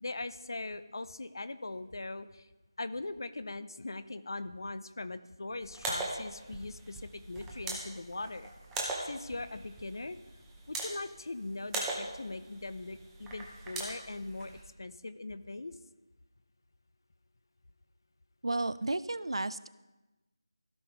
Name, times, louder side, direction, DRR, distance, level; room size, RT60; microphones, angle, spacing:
voice 1, 0.0-2.5 2.8-8.5 9.0-10.2 10.7-14.5 14.8-15.8, left 2 dB, 55° left, 13 dB, 0.6 m, -40 dB
sound 1, 5.6-14.6, right 2 dB, 5° right, 0.6 m, -41 dB
voice 2, 18.4-19.7, right 2 dB, 85° right, 16 dB, 0.4 m, -33 dB
15.5 x 5.4 x 3.4 m, 1.1 s
figure-of-eight pair, 175°, 3 cm